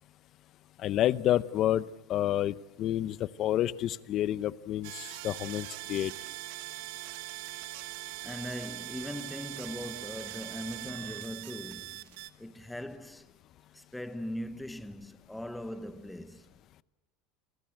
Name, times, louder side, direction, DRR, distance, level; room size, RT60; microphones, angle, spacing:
voice 1, 0.8-6.1, left 12 dB, 45° left, 0.8 m, -29 dB
sound 1, 4.8-12.3, right 20 dB, 75° right, 1.2 m, -42 dB
voice 2, 8.2-13.3 13.7-16.5, left 1 dB, 5° left, 1.1 m, -40 dB
28.0 x 20.0 x 7.9 m
supercardioid pair, 130°, 0 cm